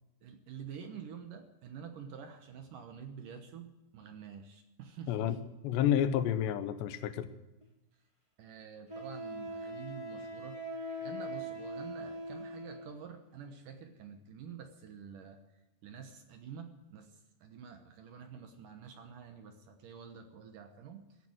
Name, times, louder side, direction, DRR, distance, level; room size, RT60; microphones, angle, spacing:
voice 1, 0.2-5.4 8.4-10.6 11.0-21.3, right 7 dB, 65° right, 6 dB, 2.2 m, -48 dB
voice 2, 5.1-7.3, left 10 dB, 80° left, 11 dB, 3.1 m, -30 dB
Wind instrument woodwind instrument, 7.6-7.7 8.9-13.0, equal, 5° right, 3.5 m, -41 dB
15.5 x 10.0 x 8.0 m, 1.0 s
omnidirectional pair, 5.0 m